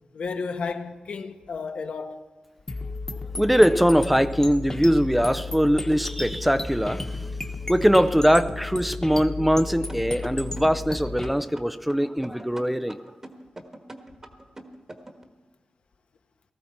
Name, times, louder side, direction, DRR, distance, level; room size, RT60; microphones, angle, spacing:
voice 1, 0.1-2.2, left 4 dB, 80° left, 1.1 m, -32 dB
sound 1, 2.7-11.3, left 3 dB, 25° left, 1.2 m, -33 dB
voice 2, 3.4-13.0, equal, 5° right, 0.4 m, -22 dB
sound 2, 9.9-15.2, right 1 dB, 25° right, 1.4 m, -43 dB
18.5 x 14.5 x 4.4 m
wide cardioid pair, 130°, 2 cm